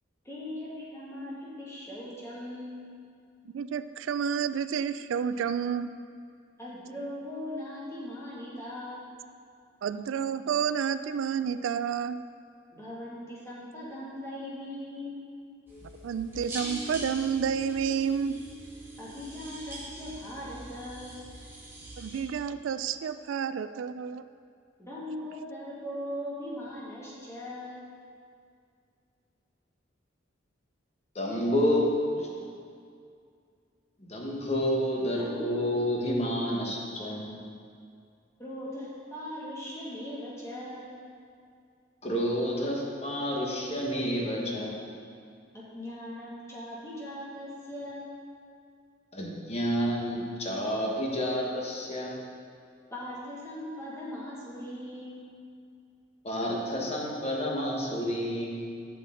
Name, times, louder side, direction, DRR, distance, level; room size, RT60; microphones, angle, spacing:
voice 1, 0.2-2.8 6.6-9.1 12.7-15.2 19.0-21.2 24.8-27.8 35.2-35.5 38.4-40.9 45.5-48.1 52.9-55.2, left 1 dB, 15° left, -7 dB, 2.1 m, -39 dB
voice 2, 3.5-5.9 9.8-12.2 16.0-18.4 22.0-24.2, right 7 dB, 75° right, 12 dB, 0.3 m, -30 dB
sound 1, 15.7-22.2, right 1 dB, 10° right, 1.8 m, -42 dB
voice 3, 31.1-31.9 32.1-32.3 34.0-37.3 42.0-44.8 49.1-52.1 56.2-58.6, equal, 35° left, -2 dB, 1.4 m, -29 dB
11.5 x 6.6 x 3.8 m, 2.3 s
head